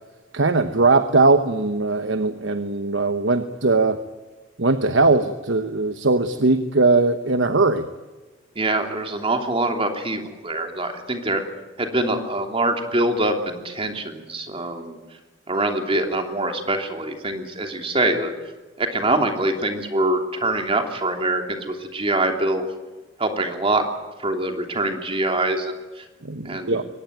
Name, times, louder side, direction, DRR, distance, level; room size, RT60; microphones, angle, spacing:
voice 1, 0.3-4.0 4.6-7.9 26.2-26.8, right 3 dB, 80° right, 9 dB, 1.1 m, -20 dB
voice 2, 8.5-11.4 11.8-15.0 15.5-18.3 18.8-22.7 23.2-23.8 24.2-26.0 26.4-26.8, right 2 dB, 30° right, 4 dB, 3.0 m, -24 dB
23.5 x 19.0 x 9.3 m, 1.2 s
head